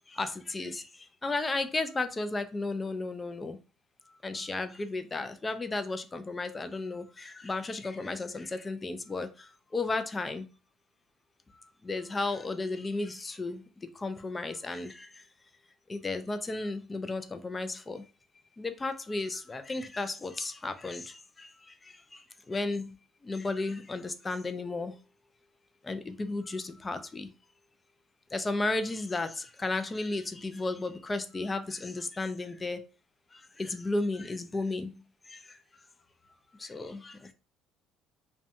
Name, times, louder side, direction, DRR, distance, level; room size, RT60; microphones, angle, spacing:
voice 1, 0.1-0.8 1.2-3.6 4.2-9.3 9.7-10.4 11.8-13.6 14.0-14.9 15.9-18.0 18.6-21.0 22.5-22.9 23.3-24.9 25.9-27.3 28.3-32.8 33.6-34.9 36.7-37.3, left 3 dB, 20° left, 0.3 m, -33 dB
2.6 x 2.2 x 2.5 m
cardioid pair, 100°, 0 cm